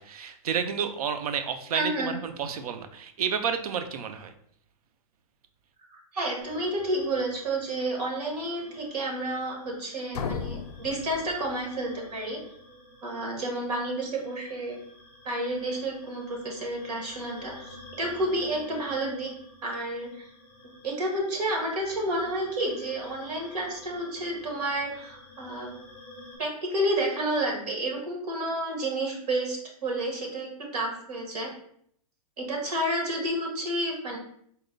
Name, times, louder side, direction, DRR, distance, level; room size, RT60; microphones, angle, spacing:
voice 1, 0.0-4.3, right 7 dB, 70° right, 8 dB, 0.5 m, -30 dB
voice 2, 1.7-2.1 5.9-12.4 13.0-14.8 15.2-19.3 19.6-20.2 20.8-25.7 26.4-31.5 32.4-34.2, right 1 dB, 90° right, 0 dB, 1.5 m, -30 dB
sound 1, 6.4-26.4, left 1 dB, 10° left, 0.6 m, -50 dB
sound 2, 10.1-12.0, left 6 dB, 80° left, 0.4 m, -36 dB
4.1 x 2.2 x 3.8 m, 0.67 s
hypercardioid pair, 175°, 20 cm